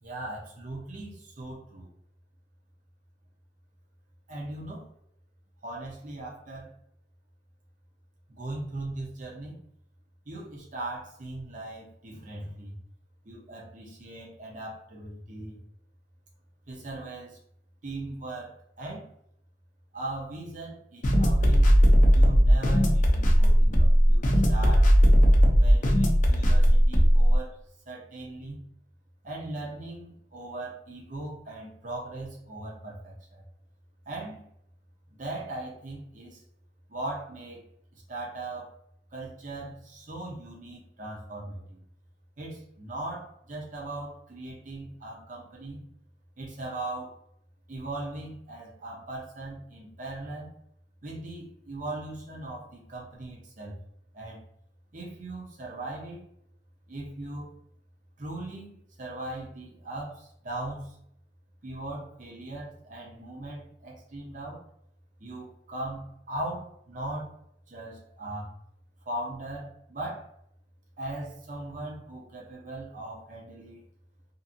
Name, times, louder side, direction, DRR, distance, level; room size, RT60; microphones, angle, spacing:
voice 1, 0.0-1.9 4.3-4.8 5.6-6.7 8.3-9.5 10.3-12.7 13.2-15.6 16.7-17.4 17.8-19.0 19.9-21.7 22.1-24.9 25.5-27.6 27.9-28.6 29.2-33.4 34.1-34.4 35.1-36.4 36.9-37.6 38.1-38.7 39.1-41.8 42.4-45.8 46.4-47.1 47.7-50.5 51.0-53.8 54.1-54.4 54.9-56.2 56.9-57.5 58.2-61.0 61.6-64.6 65.2-67.3 67.7-68.5 69.1-70.3 71.0-73.8, right 2 dB, 45° right, -3 dB, 0.7 m, -39 dB
sound 1, 21.0-27.4, equal, 45° left, 0.5 m, -18 dB
2.6 x 2.5 x 2.6 m, 0.72 s
head